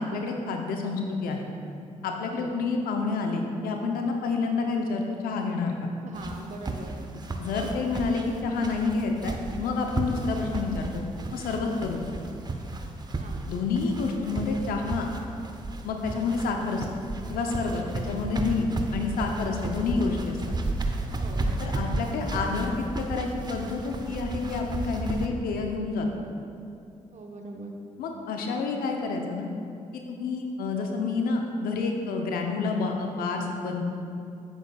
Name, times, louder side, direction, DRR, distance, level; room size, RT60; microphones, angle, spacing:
voice 1, 0.0-1.5 2.0-5.9 7.4-11.0 11.3-12.0 13.5-15.1 15.8-16.9 17.3-20.4 21.6-26.1 28.0-29.5 29.9-33.8, left 4 dB, 75° left, 2 dB, 0.7 m, -29 dB
voice 2, 6.0-6.9 13.2-13.5 21.2-21.5 27.1-27.7, right 2 dB, 50° right, 2 dB, 1.0 m, -41 dB
sound 1, 6.1-25.3, right 2 dB, 30° right, 0.7 m, -33 dB
8.9 x 7.8 x 2.3 m, 2.5 s
hypercardioid pair, 45°, 15 cm